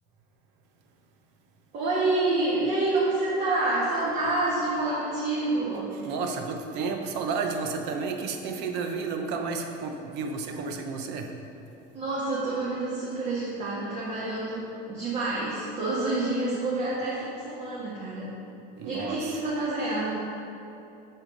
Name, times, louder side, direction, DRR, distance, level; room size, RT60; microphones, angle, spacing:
voice 1, 1.7-5.9 11.9-18.3 18.8-20.1, right 2 dB, 40° right, -7 dB, 1.5 m, -28 dB
voice 2, 5.9-11.3 18.8-19.3, right 4 dB, 60° right, 4 dB, 0.8 m, -31 dB
7.8 x 5.8 x 5.2 m, 2.8 s
cardioid pair, 165°, 19 cm